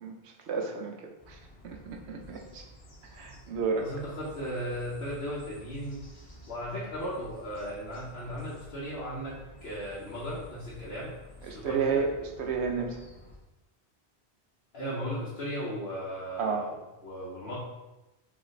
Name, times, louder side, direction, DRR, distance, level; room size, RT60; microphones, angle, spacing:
voice 1, 0.0-1.0 1.3-1.4 1.6-2.6 3.1-3.9 11.4-13.0 16.4-16.6, right 5 dB, 90° right, 3 dB, 1.0 m, -31 dB
sound 1, 1.2-13.4, left 1 dB, 35° left, 1.1 m, -51 dB
voice 2, 3.7-6.0 6.5-11.1 11.4-12.0 14.7-16.8 17.0-17.5, equal, 65° left, -9 dB, 1.2 m, -36 dB
5.0 x 3.3 x 3.2 m, 1.0 s
omnidirectional pair, 1.1 m